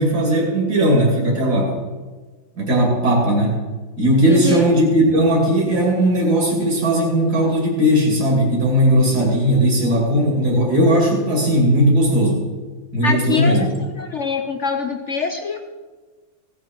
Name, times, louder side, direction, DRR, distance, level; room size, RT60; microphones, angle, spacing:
voice 1, 0.0-1.7 2.6-3.6 4.0-12.4 12.9-13.7, equal, 50° right, -2 dB, 3.3 m, -17 dB
voice 2, 4.2-4.7 13.0-15.6, left 5 dB, 60° left, 5 dB, 0.7 m, -24 dB
17.0 x 9.3 x 4.6 m, 1.3 s
omnidirectional pair, 2.2 m